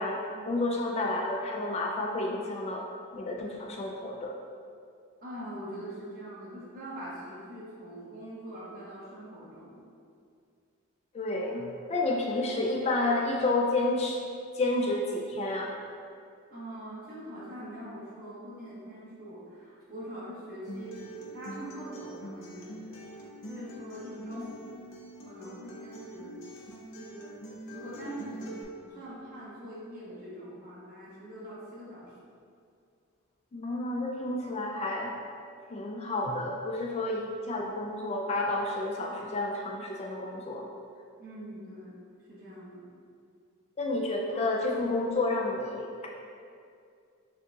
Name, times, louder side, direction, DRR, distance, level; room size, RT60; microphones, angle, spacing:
voice 1, 0.5-2.8 3.1-4.4 11.1-11.6 11.9-14.2 14.5-15.7 24.2-24.4 33.5-35.1 35.7-40.6 43.8-46.1, left 2 dB, 30° left, -1 dB, 0.3 m, -30 dB
voice 2, 5.2-9.8 16.5-24.6 25.2-26.6 27.0-27.3 27.7-32.1 41.2-42.0 42.3-42.9, equal, 45° right, -9 dB, 1.3 m, -43 dB
Acoustic guitar, 20.6-28.6, right 1 dB, 65° left, 0.6 m, -44 dB
6.3 x 2.3 x 2.7 m, 2.3 s
head